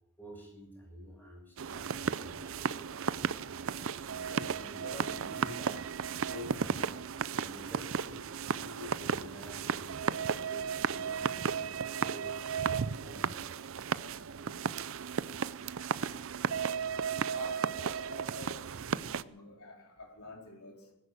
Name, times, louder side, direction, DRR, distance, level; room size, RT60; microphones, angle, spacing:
voice 1, 0.2-3.7 4.1-6.9 7.3-8.3 8.6-12.4 13.0-14.0 15.0-15.3, left 1 dB, 10° left, 6.3 m, -49 dB
sound 1, 1.6-19.2, right 6 dB, 60° right, 0.5 m, -34 dB
voice 2, 17.3-20.9, left 2 dB, 75° left, 3.9 m, -49 dB
19.5 x 10.5 x 6.7 m
head